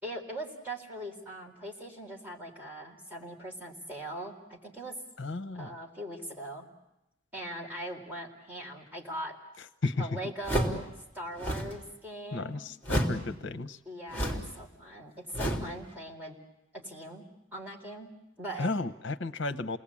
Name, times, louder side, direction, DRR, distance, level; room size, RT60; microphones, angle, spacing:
voice 1, 0.0-5.0 5.5-6.7 7.3-9.4 10.0-10.9 11.1-12.6 13.9-16.4 16.7-17.2 17.5-18.1 18.4-18.7, right 1 dB, 10° right, -1 dB, 4.0 m, -40 dB
voice 2, 5.2-5.7 9.8-10.1 12.3-13.8 18.6-19.8, left 3 dB, 65° left, 8 dB, 1.0 m, -33 dB
sound 1, 10.4-10.9 11.3-11.8 12.8-13.3 14.1-14.6 15.3-15.8, equal, 10° left, 3.4 m, -30 dB
29.5 x 20.0 x 8.6 m, 0.89 s
head